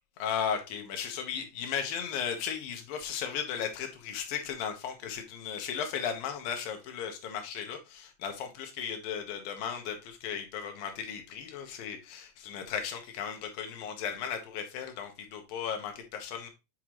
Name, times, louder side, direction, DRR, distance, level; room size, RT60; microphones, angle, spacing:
voice 1, 0.2-16.5, left 8 dB, 80° left, 2.9 m, -36 dB
8.0 x 5.1 x 3.0 m
omnidirectional pair, 4.0 m